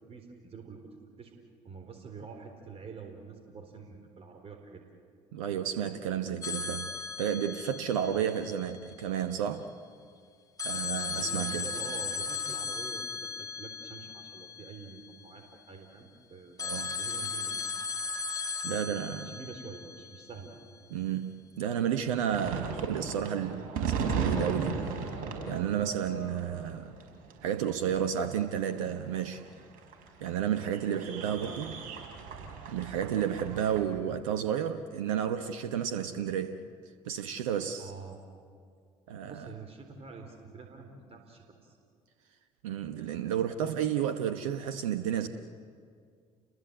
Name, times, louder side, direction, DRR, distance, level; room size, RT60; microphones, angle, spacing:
voice 1, 0.1-0.8 1.2-1.4 1.6-4.8 8.0-8.2 10.7-16.6 16.9-17.6 18.7-20.5 22.7-22.8 30.9-31.9 33.0-33.2 37.8-38.2 39.2-41.8, right 5 dB, 35° right, 3.8 m, -46 dB
voice 2, 5.3-6.9 7.2-9.7 10.6-11.6 16.6-17.0 18.6-19.3 20.9-25.0 25.5-26.9 27.4-29.4 30.2-31.7 32.7-36.6 37.0-37.9 39.1-39.5 42.6-45.3, right 9 dB, 75° right, 1.0 m, -32 dB
sound 1, 6.4-9.3 10.6-15.5 16.6-20.8, left 5 dB, 20° left, 2.2 m, -37 dB
sound 2, 22.3-33.8, right 5 dB, 60° right, 5.5 m, -36 dB
30.0 x 22.0 x 8.1 m
hypercardioid pair, 60°, 17 cm